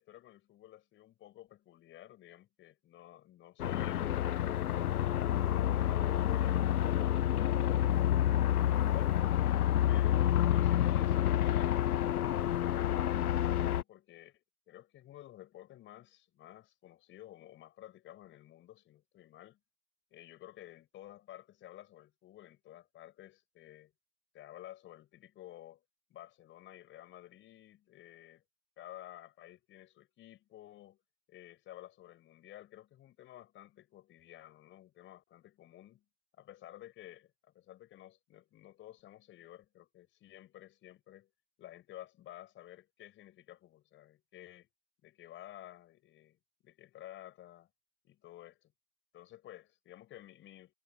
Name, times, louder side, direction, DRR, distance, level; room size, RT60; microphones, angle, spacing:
voice 1, 0.0-9.2 9.5-19.6 20.1-23.9 24.3-25.8 26.1-28.4 28.8-31.0 31.3-36.0 36.4-41.3 41.6-44.7 45.0-47.7 48.0-48.7 49.1-50.7, left 13 dB, 25° left, 5.7 m, -53 dB
sound 1, 3.6-13.8, left 11 dB, 65° left, 0.7 m, -29 dB
figure-of-eight pair, 115°, 50 cm